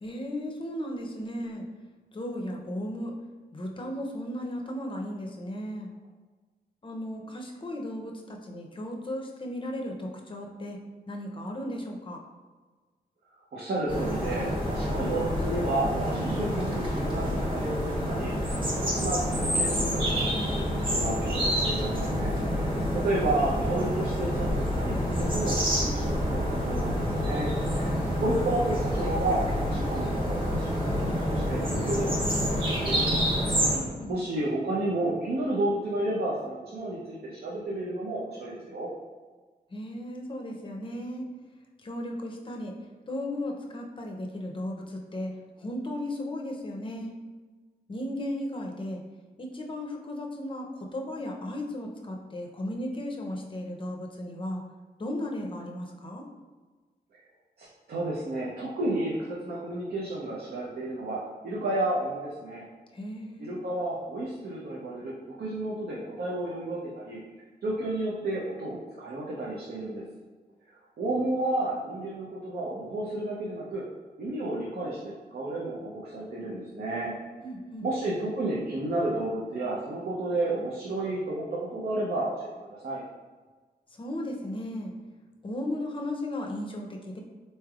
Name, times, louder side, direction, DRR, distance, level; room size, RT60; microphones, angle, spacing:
voice 1, 0.0-1.6 2.1-3.1 3.5-5.9 6.8-10.8 11.1-12.2 22.7-22.8 33.7-34.1 39.7-41.3 41.8-42.7 43.1-47.1 47.9-49.0 49.4-54.6 55.0-56.2 62.9-63.5 77.4-77.9 83.9-84.9 85.4-87.2, left 1 dB, 30° left, 0 dB, 0.5 m, -35 dB
voice 2, 13.5-33.2 34.1-38.9 57.6-61.2 61.4-62.6 63.4-67.2 67.6-70.0 71.0-73.8 74.2-77.1 77.8-82.5 82.8-83.0, right 2 dB, 70° right, -5 dB, 0.6 m, -32 dB
sound 1, 13.9-33.8, equal, 30° right, 1.0 m, -28 dB
4.1 x 3.2 x 2.3 m, 1.4 s
wide cardioid pair, 125°, 17 cm